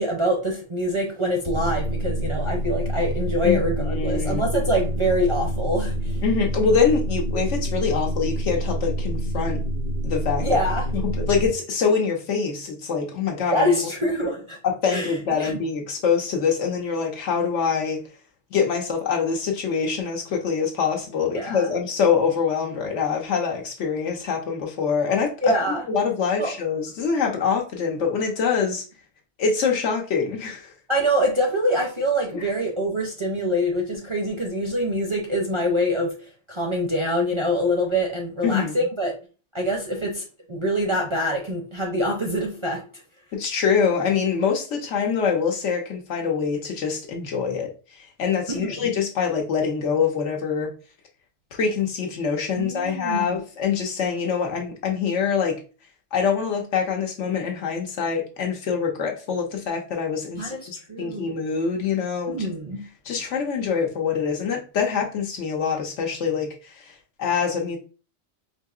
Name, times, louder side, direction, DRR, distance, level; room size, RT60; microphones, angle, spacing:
voice 1, 0.0-6.2 10.4-10.8 13.5-14.6 14.9-15.5 21.3-21.7 25.4-25.8 26.4-26.5 30.9-39.2 39.5-43.0 48.5-48.9 52.6-53.4 60.4-61.3 62.3-62.8, equal, 35° right, 0.5 m, -25 dB
sound 1, 1.5-11.5, equal, 50° left, 0.8 m, -27 dB
voice 2, 3.4-4.4 6.2-9.6 10.0-10.5 11.0-13.8 14.6-18.0 18.5-25.5 25.9-28.8 29.4-30.7 32.3-32.4 38.4-38.9 43.3-50.7 51.5-55.6 56.1-62.5 63.1-67.8, left 6 dB, 85° left, 1.2 m, -25 dB
4.5 x 2.8 x 2.3 m
omnidirectional pair, 1.2 m